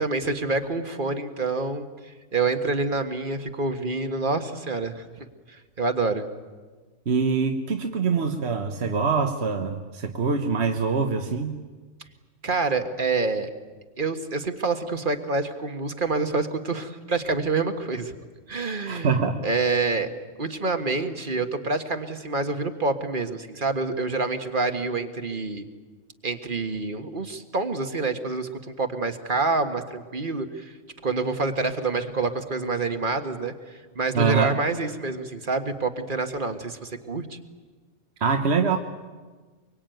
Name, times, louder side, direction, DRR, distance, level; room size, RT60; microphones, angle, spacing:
voice 1, 0.0-6.3 12.4-13.5 14.0-18.1 18.5-19.2 19.4-20.1 20.4-25.7 26.2-28.5 28.8-30.7 31.0-37.4, right 3 dB, 45° right, 7 dB, 1.7 m, -27 dB
voice 2, 7.1-11.6 18.9-19.4 34.1-34.6 38.2-38.8, right 5 dB, 60° right, 5 dB, 1.5 m, -24 dB
24.5 x 23.5 x 9.2 m, 1.4 s
omnidirectional pair, 1.3 m